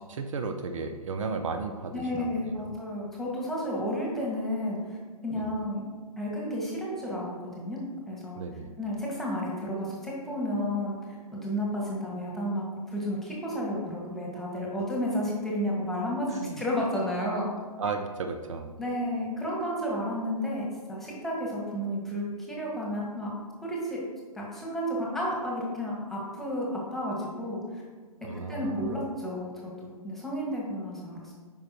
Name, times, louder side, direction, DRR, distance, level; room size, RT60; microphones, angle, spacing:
voice 1, 0.1-2.8 5.4-5.5 8.4-8.7 16.3-16.6 17.8-18.7 28.2-29.0, right 4 dB, 55° right, 6 dB, 0.5 m, -34 dB
voice 2, 1.9-5.0 5.2-5.9 6.2-7.8 8.1-8.4 8.8-17.5 18.8-23.3 23.6-24.0 24.3-27.8 28.2-31.3, equal, ahead, -4 dB, 1.5 m, -32 dB
8.7 x 5.4 x 2.9 m, 1.4 s
figure-of-eight pair, 125°, 20 cm